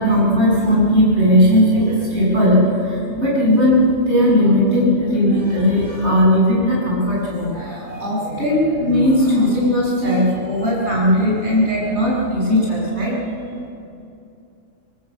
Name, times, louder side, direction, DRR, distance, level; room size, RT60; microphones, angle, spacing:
voice 1, 0.0-13.4, equal, 55° right, -5 dB, 8.0 m, -17 dB
26.5 x 19.0 x 8.6 m, 2.6 s
omnidirectional pair, 1.4 m